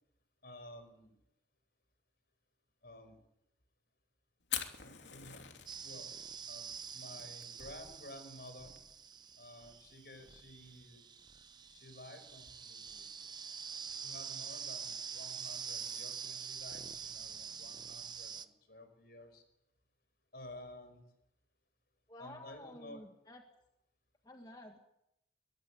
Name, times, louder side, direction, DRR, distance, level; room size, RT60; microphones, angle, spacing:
voice 1, 0.4-1.2 2.8-3.2 4.8-5.5 5.8-6.1 6.5-6.7 6.9-8.8 9.4-11.0 11.7-13.1 14.0-19.4 20.3-21.0 22.2-23.0, left 1 dB, 60° left, 8 dB, 5.6 m, -53 dB
Fire, 4.4-14.2, left 10 dB, 90° left, 3.0 m, -48 dB
sound 1, 5.7-18.5, right 7 dB, 25° right, 0.8 m, -46 dB
voice 2, 22.1-23.4 24.2-24.8, left 1 dB, 20° left, 3 dB, 1.8 m, -51 dB
23.0 x 19.0 x 8.6 m, 0.84 s
head